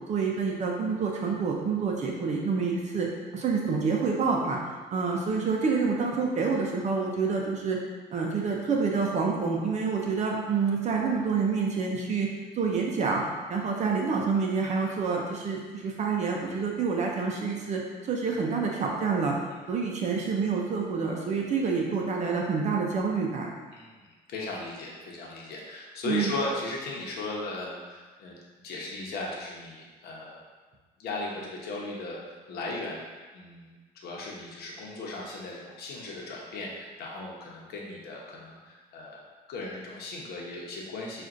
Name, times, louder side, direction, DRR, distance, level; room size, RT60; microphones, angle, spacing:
voice 1, 0.1-3.1 3.3-4.6 4.9-7.8 8.1-12.3 12.5-13.2 13.5-19.4 19.7-23.5 26.0-26.3, right 5 dB, 45° right, 0 dB, 0.6 m, -27 dB
voice 2, 23.7-28.4 28.6-30.4 31.0-33.0 33.3-39.2 39.5-41.2, left 2 dB, 70° left, -2 dB, 0.9 m, -37 dB
5.9 x 2.5 x 2.5 m, 1.3 s
cardioid pair, 110°, 17 cm